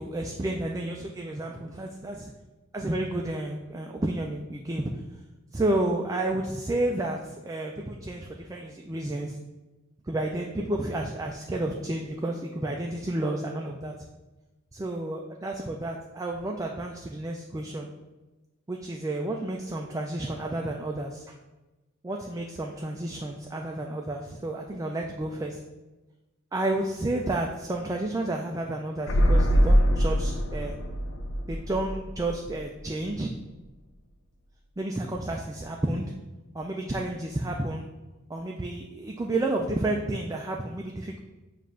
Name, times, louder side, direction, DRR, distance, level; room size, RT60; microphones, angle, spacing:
voice 1, 0.0-2.3 2.7-4.9 5.5-9.4 10.1-13.9 14.7-17.9 18.7-21.3 22.0-25.6 26.5-30.7 31.5-33.3 34.8-36.1 36.5-37.9 38.3-41.2, right 1 dB, 15° right, 0 dB, 0.3 m, -31 dB
sound 1, 29.1-32.8 33.1-33.2, equal, 70° left, 0.6 m, -23 dB
7.2 x 2.5 x 5.6 m, 1.1 s
head